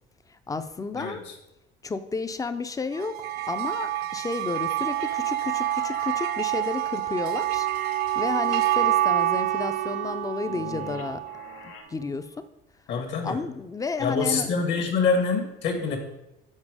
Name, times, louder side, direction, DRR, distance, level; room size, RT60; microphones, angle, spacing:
voice 1, 0.3-1.2 1.8-7.7 8.1-11.2 11.6-12.3 13.2-14.5, left 4 dB, 15° left, 11 dB, 0.4 m, -32 dB
voice 2, 0.9-1.3 12.9-13.4 14.0-16.0, left 4 dB, 60° left, 3 dB, 1.6 m, -25 dB
sound 1, 2.9-11.6, right 13 dB, 85° right, 0.4 m, -27 dB
sound 2, 4.4-11.8, left 6 dB, 85° left, 1.1 m, -45 dB
Wind instrument woodwind instrument, 7.3-11.4, right 14 dB, 35° right, 0.5 m, -36 dB
7.4 x 4.4 x 4.8 m, 0.90 s
cardioid pair, 120°, 21 cm